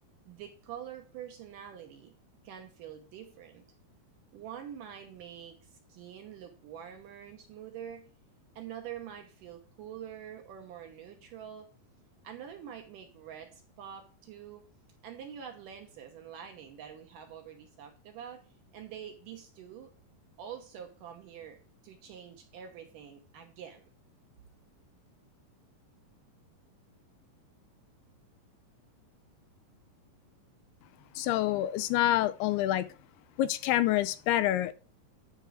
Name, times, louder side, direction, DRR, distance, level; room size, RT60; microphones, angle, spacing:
voice 1, 0.3-2.2 2.4-3.6 4.3-8.1 8.6-11.7 12.2-14.7 15.0-18.4 18.7-19.9 20.4-23.9, right 9 dB, 70° right, 2.3 m, -46 dB
voice 2, 31.2-32.9 33.4-34.7, left 13 dB, 80° left, 2.5 m, -27 dB
10.5 x 4.5 x 6.2 m
omnidirectional pair, 4.7 m